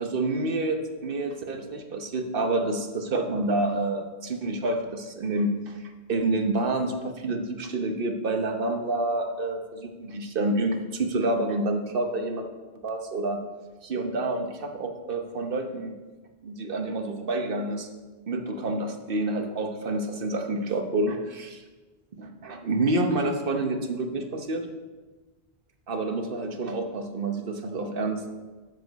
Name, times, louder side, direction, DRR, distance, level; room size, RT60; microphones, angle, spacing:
voice 1, 0.0-5.8 6.1-12.5 12.8-13.4 13.8-16.0 16.4-17.9 18.3-21.6 22.1-24.6 25.9-28.3, right 2 dB, 60° right, 5 dB, 1.2 m, -28 dB
13.0 x 6.8 x 4.1 m, 1.3 s
omnidirectional pair, 1.1 m